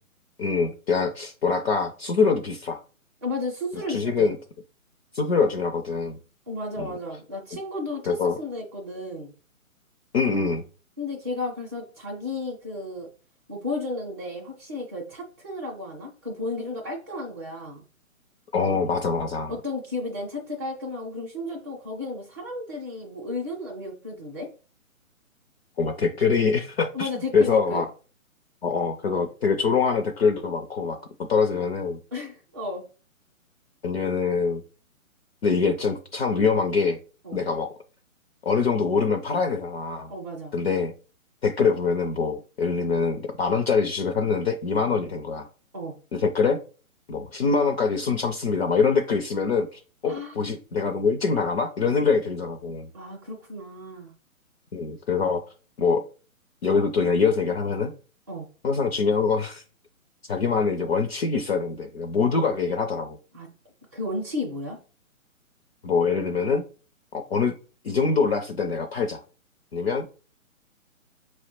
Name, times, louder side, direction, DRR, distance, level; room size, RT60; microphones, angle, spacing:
voice 1, 0.4-2.8 3.9-4.4 5.1-6.2 6.8-6.9 8.0-8.4 10.1-10.6 18.5-19.5 25.8-27.9 28.6-31.0 31.3-32.0 33.8-34.6 35.4-37.0 37.3-37.7 38.4-40.1 40.5-40.9 41.4-45.5 46.1-46.6 47.1-52.9 54.7-55.4 55.8-56.0 56.6-57.9 58.6-59.6 60.3-63.2 65.8-66.6 67.1-67.5 67.8-69.2 69.7-70.1, left 5 dB, 50° left, 4 dB, 0.5 m, -24 dB
voice 2, 3.2-4.3 6.5-9.3 11.0-13.1 13.5-17.8 19.5-24.5 26.9-27.8 32.1-32.8 37.2-37.4 40.1-40.5 45.7-46.0 50.1-50.4 52.9-54.1 58.3-58.5 63.3-63.5 63.9-64.8, left 2 dB, 20° right, -5 dB, 0.5 m, -33 dB
4.5 x 2.1 x 4.3 m, 0.36 s
hypercardioid pair, 150°, 42 cm